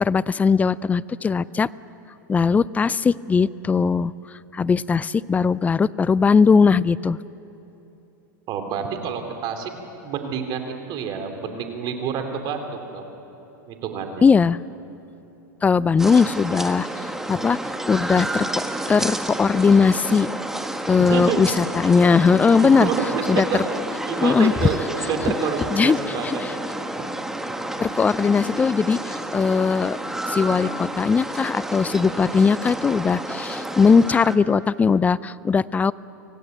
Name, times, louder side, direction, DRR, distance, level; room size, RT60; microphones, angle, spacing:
voice 1, 0.0-1.7 2.3-4.1 4.5-7.2 14.2-14.6 15.6-17.6 17.9-20.3 20.9-22.9 23.3-23.4 24.2-24.5 25.7-26.5 27.8-30.0 30.3-35.9, left 5 dB, 15° left, 20 dB, 0.4 m, -19 dB
voice 2, 8.5-9.7 10.0-13.0 13.7-14.3 21.1-21.4 22.6-23.2 23.5-23.6 24.1-26.4 26.7-26.8, right 6 dB, 45° right, 5 dB, 3.0 m, -28 dB
sound 1, 16.0-34.4, right 1 dB, 5° right, 1.4 m, -30 dB
25.0 x 17.0 x 9.2 m, 3.0 s
hypercardioid pair, 115°, 11 cm